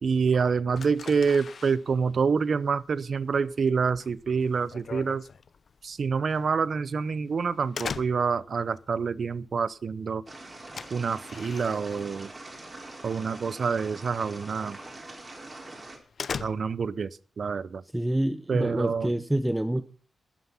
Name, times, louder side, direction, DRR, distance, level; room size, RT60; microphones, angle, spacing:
voice 1, 0.0-5.2 5.8-10.2 10.9-12.3 13.0-14.8 16.4-17.1 17.4-17.8 18.5-19.1, right 5 dB, 55° right, 19 dB, 0.7 m, -27 dB
sound 1, 0.7-12.6 12.9-13.4 13.8-14.0 14.4-14.5 14.9-15.0 15.4-17.0, left 6 dB, 60° left, 0.7 m, -41 dB
sound 2, 10.3-16.0, right 2 dB, 30° right, 4.5 m, -44 dB
voice 2, 17.9-19.8, right 1 dB, 10° right, 11 dB, 0.8 m, -27 dB
13.5 x 11.5 x 5.7 m, 0.41 s
wide cardioid pair, 120°, 0 cm